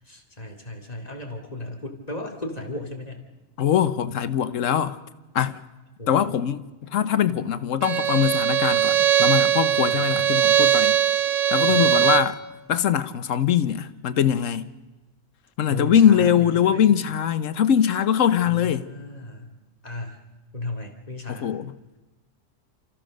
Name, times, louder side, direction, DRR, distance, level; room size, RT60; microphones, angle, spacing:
voice 1, 0.0-3.2 6.0-6.2 9.9-10.4 11.7-12.0 15.7-16.8 18.4-19.6 19.8-20.2 20.5-21.5, left 2 dB, 30° left, 2.7 m, -35 dB
voice 2, 3.6-5.0 5.3-5.6 6.1-11.0 11.5-12.4 12.7-14.7 15.6-18.9 21.3-21.7, left 9 dB, 85° left, 1.2 m, -22 dB
Bowed string instrument, 7.8-12.4, right 10 dB, 80° right, 1.2 m, -20 dB
29.5 x 14.5 x 6.5 m
omnidirectional pair, 1.3 m